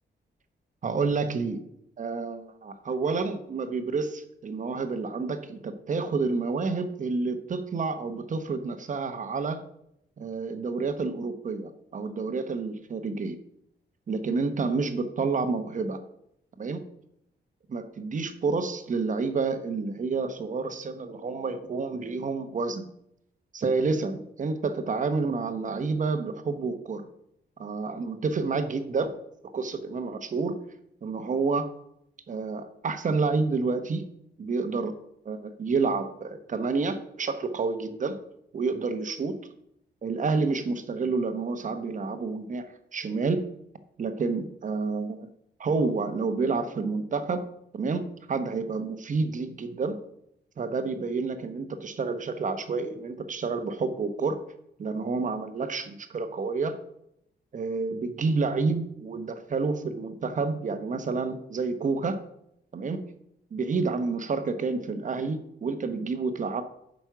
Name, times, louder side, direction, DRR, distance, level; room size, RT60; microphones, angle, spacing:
voice 1, 0.8-1.6 2.0-9.6 10.2-13.4 14.1-16.0 16.6-16.8 17.7-22.9 23.5-27.1 27.6-29.1 29.5-30.6 31.0-31.7 32.3-34.0 34.4-35.0 35.2-38.2 38.5-39.4 40.0-42.6 42.9-43.4 44.0-45.3 45.6-47.4 47.7-50.0 50.6-54.4 54.8-56.8 57.5-62.2 62.7-63.0 63.5-66.6, right 4 dB, 45° right, 9 dB, 0.9 m, -29 dB
9.1 x 5.3 x 5.9 m, 0.76 s
wide cardioid pair, 145°, 19 cm